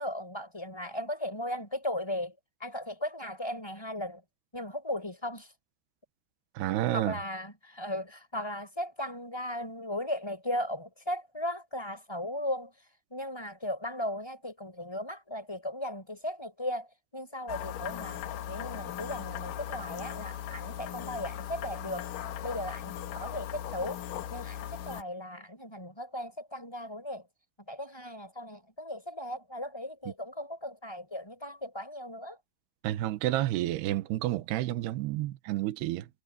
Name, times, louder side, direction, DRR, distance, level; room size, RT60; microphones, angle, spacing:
voice 1, 0.0-4.2 4.5-5.5 6.9-12.7 13.1-22.1 22.4-24.0 24.3-27.3 27.7-32.4, left 1 dB, 5° left, 4.6 m, -37 dB
voice 2, 6.5-7.2 32.8-36.1, right 15 dB, 75° right, 3.1 m, -30 dB
sound 1, 17.5-25.0, left 11 dB, 65° left, 2.4 m, -38 dB
omnidirectional pair, 4.8 m